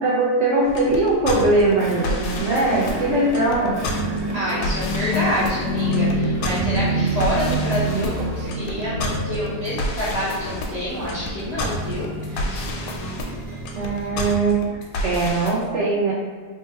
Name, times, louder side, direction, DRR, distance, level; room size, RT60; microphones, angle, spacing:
voice 1, 0.0-3.8 13.7-14.6 15.0-16.1, right 2 dB, 65° right, -6 dB, 0.7 m, -20 dB
sound 1, 0.6-15.5, left 1 dB, 85° left, 1.1 m, -30 dB
sound 2, 1.7-14.3, right 1 dB, 85° right, 1.3 m, -36 dB
sound 3, 2.2-10.8, right 1 dB, 20° right, 1.0 m, -27 dB
voice 2, 4.3-12.7, equal, 45° left, -11 dB, 0.5 m, -27 dB
3.3 x 2.1 x 3.4 m, 1.5 s
omnidirectional pair, 1.7 m